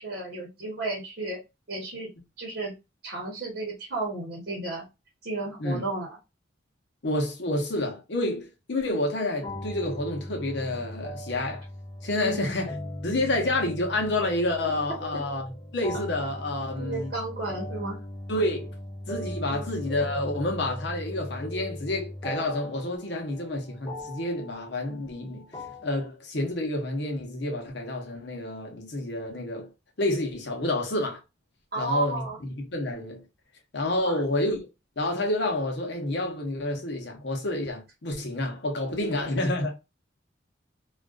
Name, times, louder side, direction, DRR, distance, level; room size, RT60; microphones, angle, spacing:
voice 1, 0.0-1.4 1.7-2.1 2.4-2.7 3.0-4.9 5.2-6.2 12.2-12.6 16.8-18.0 19.5-19.6 31.7-32.4 34.0-34.2, right 2 dB, 55° right, 0.9 m, -33 dB
voice 2, 7.0-11.6 12.0-12.7 13.0-17.1 18.3-18.7 19.1-25.5 25.8-29.7 30.0-31.2 31.8-33.2 33.7-34.7 35.0-39.7, left 1 dB, 65° left, 0.7 m, -29 dB
sound 1, 9.4-26.1, equal, 20° left, 0.4 m, -39 dB
2.4 x 2.3 x 2.3 m
head